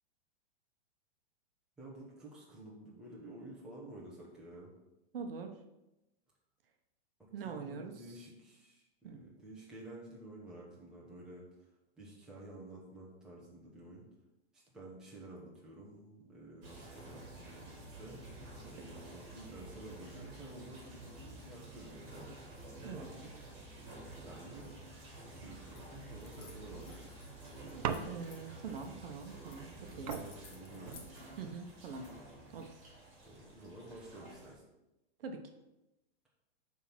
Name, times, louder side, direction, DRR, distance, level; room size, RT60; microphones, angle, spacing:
voice 1, 1.8-4.7 7.2-11.4 12.0-14.1 14.5-18.2 18.7-22.3 22.8-23.3 23.8-24.7 25.3-28.1 29.9-31.0 33.2-34.6, right 1 dB, ahead, -6 dB, 1.1 m, -51 dB
voice 2, 5.1-5.6 7.3-7.9 9.0-9.2 18.6-18.7 22.8-23.1 28.0-30.2 31.4-32.1 32.5-32.7 35.2-35.4, right 5 dB, 65° right, 5 dB, 1.0 m, -43 dB
sound 1, 16.6-34.5, right 2 dB, 25° right, 2.7 m, -51 dB
sound 2, 25.7-25.9 26.2-27.3 27.7-28.9 29.5-29.6 29.9-31.1, left 6 dB, 20° left, 0.8 m, -56 dB
sound 3, 27.8-28.6 29.7-29.8 30.1-31.5 32.3-32.7, right 7 dB, 45° right, 0.5 m, -40 dB
8.3 x 3.7 x 6.0 m, 0.95 s
supercardioid pair, 180°, 31 cm